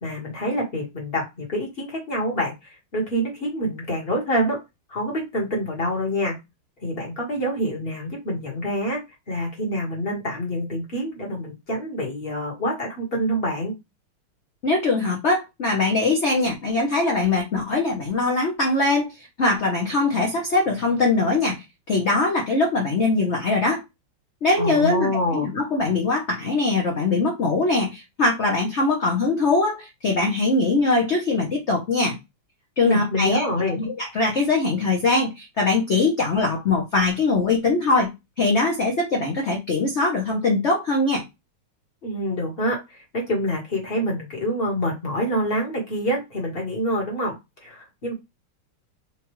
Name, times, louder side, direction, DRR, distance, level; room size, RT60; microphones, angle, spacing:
voice 1, 0.0-4.6 4.9-6.3 6.8-9.0 9.3-13.7 24.6-25.5 32.8-33.8 42.0-48.1, equal, 30° left, 1.2 m, -26 dB
voice 2, 14.6-23.8 24.4-32.2 32.8-33.5 33.8-38.1 38.4-41.2, left 3 dB, 60° left, 0.7 m, -22 dB
4.5 x 2.4 x 3.0 m
omnidirectional pair, 2.4 m